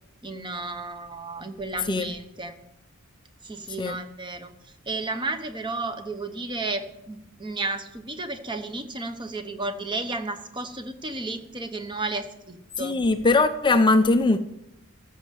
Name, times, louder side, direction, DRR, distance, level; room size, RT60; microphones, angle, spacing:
voice 1, 0.2-2.6 3.4-4.5 4.9-13.0, right 2 dB, 20° right, 1.0 m, -33 dB
voice 2, 12.8-14.4, left 3 dB, 20° left, 0.5 m, -20 dB
14.0 x 6.5 x 7.7 m
head